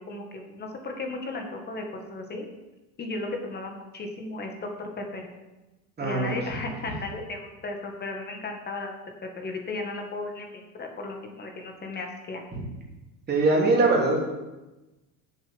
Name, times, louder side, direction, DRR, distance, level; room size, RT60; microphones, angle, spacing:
voice 1, 0.0-2.4 3.0-5.3 6.0-8.9 9.2-12.4, left 2 dB, 20° left, 3 dB, 1.8 m, -35 dB
voice 2, 6.0-6.3 13.3-14.2, right 3 dB, 20° right, -3 dB, 3.2 m, -21 dB
9.0 x 7.5 x 7.0 m, 1.1 s
cardioid pair, 145°, 44 cm